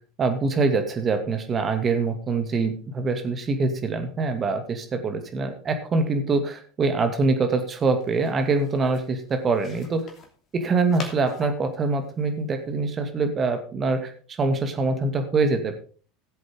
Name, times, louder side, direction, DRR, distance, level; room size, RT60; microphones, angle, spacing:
voice 1, 0.2-10.1 10.5-15.7, right 3 dB, 30° right, 6 dB, 2.4 m, -24 dB
sound 1, 7.3-12.9, left 5 dB, 35° left, 2.9 m, -45 dB
17.0 x 7.8 x 3.8 m, 0.41 s
figure-of-eight pair, 80°, 0 cm